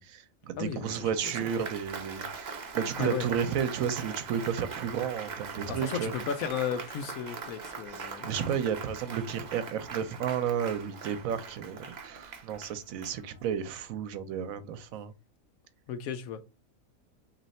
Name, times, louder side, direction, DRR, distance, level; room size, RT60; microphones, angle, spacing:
voice 1, 0.0-6.1 8.2-11.8 12.0-15.1, right 8 dB, 80° right, 1.0 m, -32 dB
voice 2, 0.6-1.4 3.0-3.3 5.7-8.4 15.9-16.4, left 7 dB, 90° left, 1.0 m, -35 dB
Applause, 0.8-13.6, right 5 dB, 45° right, 0.6 m, -41 dB
3.1 x 2.9 x 4.0 m
omnidirectional pair, 1.4 m